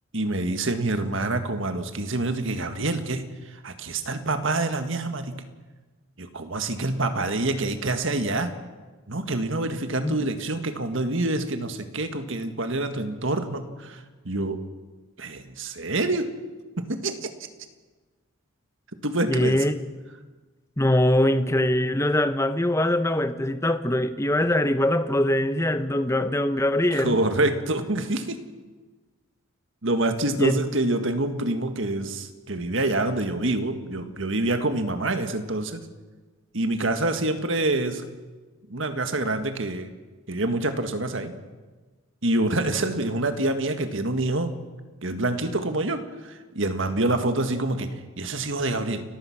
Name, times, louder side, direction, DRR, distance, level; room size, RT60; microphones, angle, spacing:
voice 1, 0.1-5.4 6.2-8.5 9.1-14.6 15.2-16.3 16.8-17.3 19.0-19.7 26.9-28.4 29.8-35.8 36.5-38.0 38.7-39.9 40.3-41.3 42.2-44.5 45.0-49.0, right 2 dB, 60° right, 1.8 m, -26 dB
voice 2, 19.3-19.8 20.8-27.2 30.4-30.6, left 1 dB, 15° left, 0.8 m, -22 dB
30.0 x 15.0 x 6.0 m
head